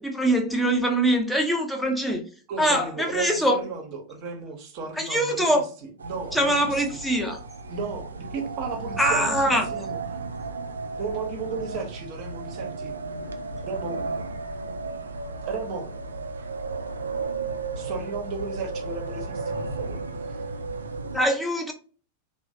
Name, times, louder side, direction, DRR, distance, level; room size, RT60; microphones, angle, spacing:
voice 1, 0.0-2.2 2.6-3.6 4.9-5.6 6.3-7.4 9.0-9.7 21.1-21.7, right 1 dB, ahead, 0.6 m, -23 dB
voice 2, 2.5-3.8 4.1-5.4 6.0-6.5 7.7-10.0 10.9-12.9 13.6-14.0 15.5-15.9 17.7-20.6, right 4 dB, 40° right, 0.7 m, -34 dB
sound 1, 6.0-21.2, right 3 dB, 75° right, 0.3 m, -34 dB
3.0 x 2.0 x 2.5 m
figure-of-eight pair, 90°, 0 cm